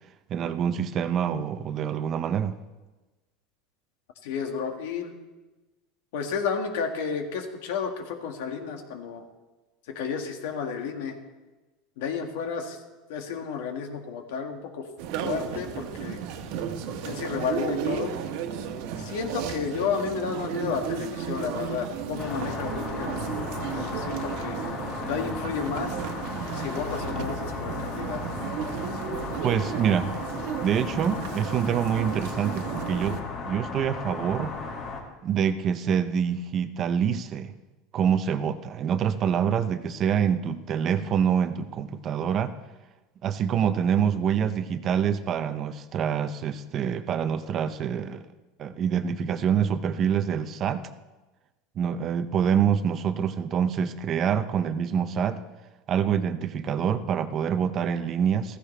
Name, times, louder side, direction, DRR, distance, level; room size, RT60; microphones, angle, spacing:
voice 1, 0.3-2.6 29.4-30.1 30.6-33.2 33.5-34.5 35.2-37.5 37.9-42.6 43.2-48.2 48.6-50.9 51.8-55.4 55.9-58.6, right 8 dB, 30° right, 11 dB, 0.6 m, -26 dB
voice 2, 4.2-5.1 6.1-9.3 9.9-11.2 12.0-12.8 13.1-14.9 15.2-16.2 17.0-18.1 19.0-23.2 23.5-24.6 25.0-26.0 26.5-28.2, left 6 dB, 75° left, 4 dB, 1.8 m, -32 dB
sound 1, 15.0-33.2, right 7 dB, 60° right, 1.2 m, -34 dB
sound 2, 22.2-35.0, left 4 dB, 45° left, 2.1 m, -35 dB
15.0 x 15.0 x 3.3 m, 1.1 s
supercardioid pair, 160°, 0 cm